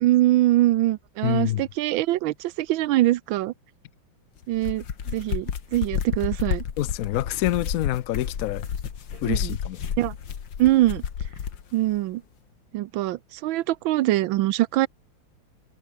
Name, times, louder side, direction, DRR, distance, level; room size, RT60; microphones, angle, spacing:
voice 1, 0.0-3.5 4.5-4.8 5.1-6.6 9.2-9.6 10.0-10.1 10.6-11.0 11.7-12.2 12.7-14.9, right 16 dB, 80° right, 1.4 m, -23 dB
voice 2, 1.2-1.6 6.8-8.6 9.2-9.8, left 14 dB, 85° left, 0.7 m, -26 dB
sound 1, 4.4-11.6, left 7 dB, 65° left, 2.3 m, -31 dB
omnidirectional pair, 2.2 m